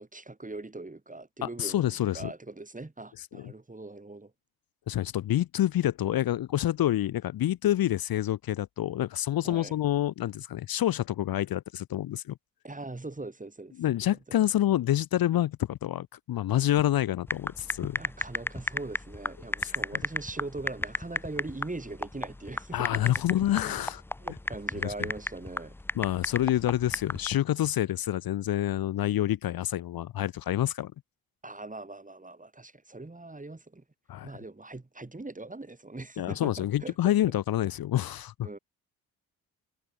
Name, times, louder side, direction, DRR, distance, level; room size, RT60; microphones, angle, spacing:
voice 1, 0.0-4.3 9.4-9.8 12.6-13.8 14.3-14.4 17.9-23.0 23.3-23.8 24.2-25.7 31.4-33.8 34.2-37.1 38.4-38.6, right 2 dB, 20° right, 7.7 m, -41 dB
voice 2, 1.4-2.3 3.2-3.5 4.9-12.4 13.8-18.0 19.6-19.7 22.7-24.0 24.8-24.9 25.9-30.9 34.1-34.3 36.2-38.5, left 13 dB, 55° left, 1.1 m, -27 dB
sound 1, 17.3-27.3, left 2 dB, 5° left, 0.5 m, -34 dB
hypercardioid pair, 50°, 42 cm